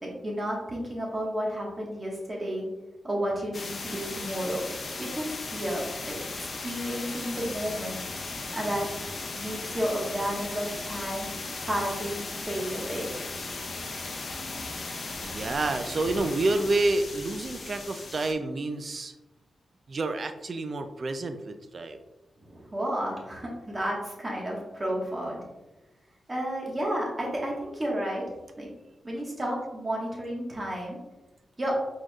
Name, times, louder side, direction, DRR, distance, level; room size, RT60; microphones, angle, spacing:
voice 1, 0.0-2.7 3.0-4.6 5.0-8.0 8.5-8.9 9.3-11.3 11.6-13.1 22.4-25.4 26.3-28.2 28.6-28.7 29.0-31.0 31.6-31.8, equal, 25° right, -2 dB, 1.4 m, -32 dB
sound 1, 3.5-18.3, left 3 dB, 50° left, 0.7 m, -37 dB
voice 2, 15.2-19.1 19.9-22.0, right 2 dB, 45° right, 8 dB, 0.4 m, -29 dB
4.5 x 4.4 x 2.3 m, 1.0 s
wide cardioid pair, 110°, 0 cm